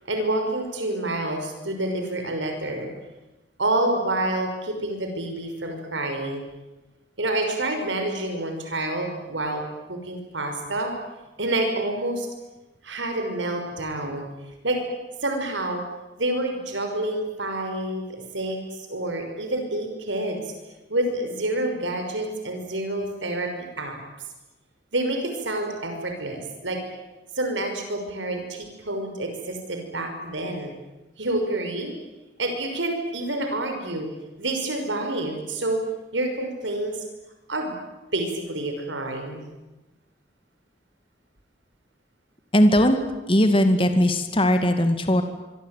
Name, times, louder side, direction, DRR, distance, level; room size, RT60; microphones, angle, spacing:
voice 1, 0.1-2.9 3.6-6.4 7.2-9.6 9.9-10.9 11.4-12.3 12.8-14.3 14.6-14.8 15.2-15.8 16.2-20.5 20.9-23.5 23.8-24.0 24.9-26.8 27.3-30.7 31.2-31.9 32.4-34.1 34.4-35.8 36.1-37.0 37.5-37.7 38.1-39.4, right 1 dB, 85° right, 4 dB, 6.0 m, -28 dB
voice 2, 42.5-43.0 43.3-45.2, equal, 30° left, 7 dB, 2.3 m, -19 dB
26.0 x 24.0 x 9.3 m, 1.1 s
head